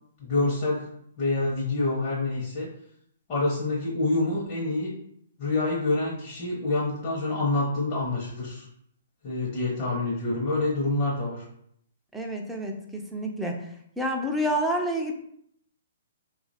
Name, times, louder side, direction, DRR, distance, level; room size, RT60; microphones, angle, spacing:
voice 1, 0.2-0.9 1.2-2.7 3.3-4.9 5.4-8.6 9.2-11.4, left 2 dB, 35° left, -6 dB, 0.9 m, -27 dB
voice 2, 12.1-13.6 14.0-15.1, equal, ahead, 0 dB, 0.5 m, -28 dB
2.8 x 2.5 x 4.1 m, 0.69 s
hypercardioid pair, 130°, 0 cm